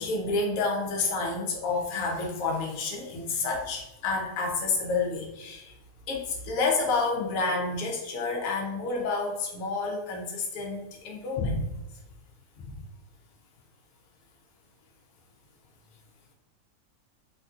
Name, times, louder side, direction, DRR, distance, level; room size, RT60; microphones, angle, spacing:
voice 1, 0.0-5.7 6.1-11.6 12.6-12.8, left 3 dB, 75° left, 0 dB, 1.0 m, -29 dB
2.8 x 2.6 x 2.3 m, 0.91 s
omnidirectional pair, 1.5 m